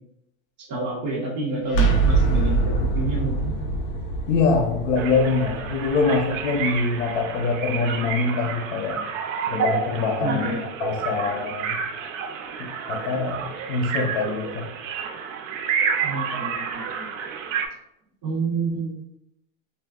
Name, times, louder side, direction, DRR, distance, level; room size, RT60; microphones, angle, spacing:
voice 1, 0.6-3.6 10.2-10.6 16.0-16.9 18.2-18.9, right 2 dB, 40° right, -5 dB, 0.8 m, -28 dB
sound 1, 1.7-7.4, right 3 dB, 35° left, 0.4 m, -24 dB
voice 2, 4.3-9.1 9.5-10.5 10.8-11.8 12.6-14.6, left 4 dB, 75° left, 4 dB, 0.8 m, -24 dB
sound 2, 4.9-17.7, right 6 dB, 75° right, 0.5 m, -30 dB
4.0 x 2.2 x 2.3 m, 0.83 s
supercardioid pair, 170°, 39 cm